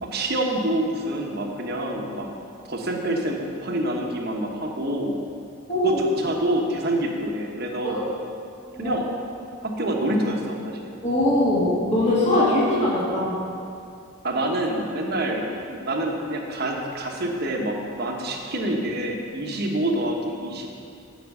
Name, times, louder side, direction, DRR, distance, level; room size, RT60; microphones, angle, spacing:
voice 1, 0.0-2.3 2.7-5.2 5.8-8.0 8.8-9.0 9.6-10.9 14.2-20.7, right 1 dB, 50° right, 1 dB, 1.2 m, -27 dB
voice 2, 5.7-6.0 7.8-8.0 8.7-8.9 11.0-13.4 19.5-19.6, left 1 dB, 35° left, -7 dB, 2.0 m, -21 dB
7.2 x 6.1 x 7.7 m, 2.4 s
head